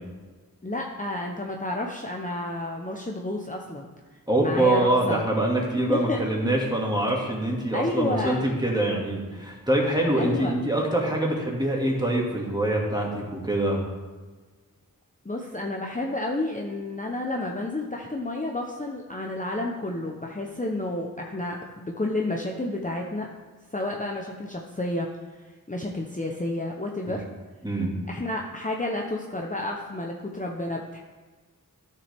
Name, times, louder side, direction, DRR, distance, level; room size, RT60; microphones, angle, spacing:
voice 1, 0.6-3.9 4.4-5.2 5.9-6.2 7.7-8.4 10.1-10.5 15.2-23.3 23.7-25.1 25.7-27.2 28.1-31.0, left 2 dB, 20° left, 0 dB, 0.8 m, -30 dB
voice 2, 4.3-13.8 27.6-28.0, right 1 dB, 10° right, -2 dB, 2.2 m, -24 dB
12.5 x 6.8 x 3.5 m, 1.4 s
wide cardioid pair, 60°, 35 cm